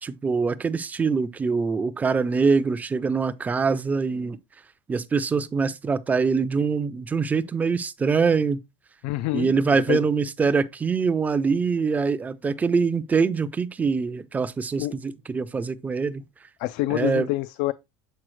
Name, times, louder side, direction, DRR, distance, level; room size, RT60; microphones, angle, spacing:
voice 1, 0.0-4.4 4.9-8.6 9.3-16.2 16.9-17.3, right 5 dB, 15° right, 0.4 m, -24 dB
voice 2, 9.0-10.0 14.8-14.9 16.6-17.7, left 17 dB, 70° left, 0.4 m, -27 dB
7.5 x 4.7 x 3.1 m
cardioid pair, 160°, 11 cm